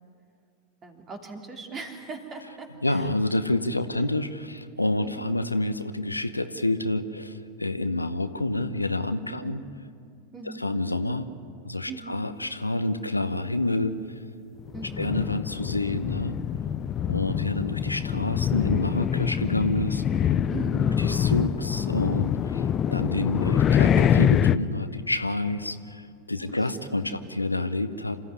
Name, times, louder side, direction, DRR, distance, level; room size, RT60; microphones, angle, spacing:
voice 1, 0.8-3.1 5.0-5.3 9.3-9.6 10.3-10.7 11.9-12.2 14.7-15.1 20.5-21.1 26.3-27.3, right 4 dB, 25° right, 3 dB, 3.1 m, -40 dB
voice 2, 2.8-9.6 10.6-11.3 11.6-13.9 15.0-16.4 17.1-20.0 21.0-28.2, left 2 dB, 85° left, 10 dB, 0.9 m, -28 dB
sound 1, 14.7-24.6, left 9 dB, 30° left, 0.6 m, -25 dB
27.0 x 14.5 x 9.6 m, 2.3 s
figure-of-eight pair, 90°, 0 cm